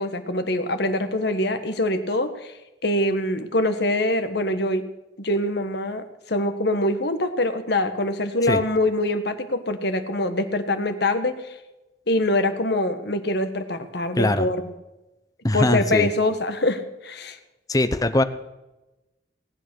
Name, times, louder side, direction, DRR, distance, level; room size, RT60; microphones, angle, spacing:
voice 1, 0.0-2.5 2.8-4.8 5.2-11.5 12.1-14.6 15.5-17.4, left 1 dB, 60° left, 9 dB, 1.4 m, -24 dB
voice 2, 14.2-14.5 15.4-16.1 17.7-18.2, left 1 dB, 20° left, 12 dB, 0.7 m, -21 dB
18.5 x 9.2 x 6.2 m, 1.0 s
head